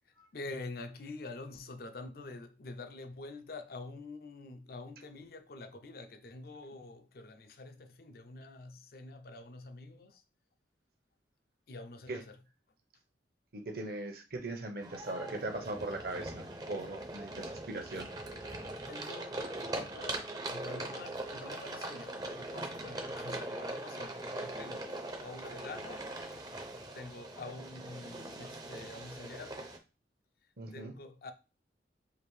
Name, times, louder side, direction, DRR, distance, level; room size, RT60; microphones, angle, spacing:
voice 1, 0.1-10.2 11.7-12.4 18.3-18.4 18.7-24.9 25.2-26.1 26.9-29.7 30.7-31.3, left 2 dB, 55° left, 0.5 m, -47 dB
voice 2, 13.5-18.1 30.6-30.9, right 2 dB, 55° right, 0.8 m, -40 dB
sound 1, 14.8-29.8, right 2 dB, 20° right, 0.5 m, -41 dB
4.9 x 2.5 x 3.2 m
head